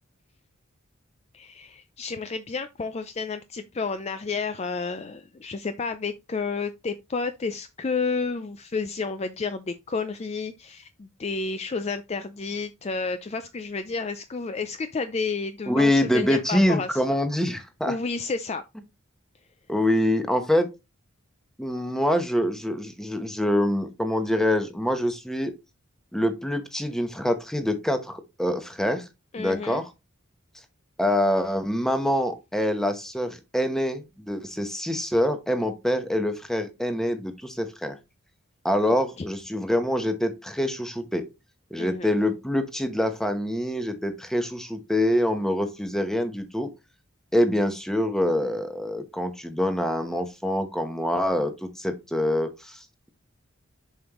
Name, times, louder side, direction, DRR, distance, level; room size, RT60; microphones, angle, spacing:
voice 1, 1.3-17.1 17.5-17.6 17.9-18.6 29.3-29.8 39.2-39.3 41.8-42.1, left 4 dB, 30° left, 0.4 m, -31 dB
voice 2, 15.7-17.9 19.7-20.7 21.6-25.5 26.1-29.0 29.4-29.9 31.0-38.0 38.6-41.2 41.7-46.7 47.3-53.1, left 1 dB, ahead, 0.9 m, -25 dB
7.3 x 5.2 x 3.0 m
head